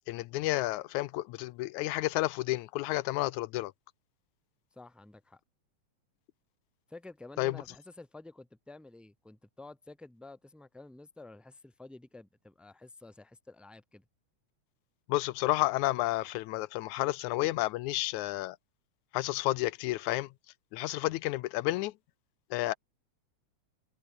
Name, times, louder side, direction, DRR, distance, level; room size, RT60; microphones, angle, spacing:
voice 1, 0.1-3.7 7.4-7.6 15.1-18.6 19.1-20.3 20.7-21.9 22.5-22.7, left 18 dB, 85° left, 2.1 m, -31 dB
voice 2, 4.7-5.4 6.9-14.0, left 2 dB, ahead, 1.8 m, -51 dB
omnidirectional pair, 3.3 m